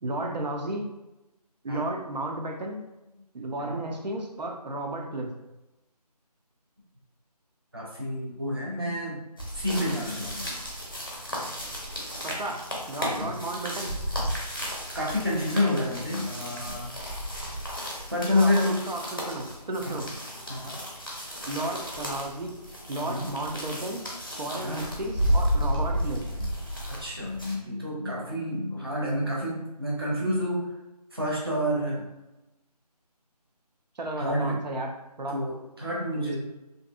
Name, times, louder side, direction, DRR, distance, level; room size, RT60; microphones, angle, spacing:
voice 1, 0.0-0.9 1.6-2.8 3.3-5.3 12.2-13.9 18.3-20.1 21.5-22.6 22.9-24.0 24.4-26.2 28.8-28.9 34.0-34.9 35.2-35.4, right 2 dB, 85° right, 1 dB, 0.6 m, -33 dB
voice 2, 7.7-9.2 9.5-10.5 13.1-13.3 14.9-16.9 18.1-18.8 19.8-20.0 20.5-20.8 23.0-23.3 24.6-24.9 26.9-30.6 31.1-32.1 34.2-34.6 35.3-36.4, left 1 dB, 35° right, -5 dB, 0.6 m, -29 dB
sound 1, 9.4-27.5, equal, 35° left, 0.5 m, -33 dB
2.6 x 2.5 x 2.3 m, 0.99 s
figure-of-eight pair, 180°, 21 cm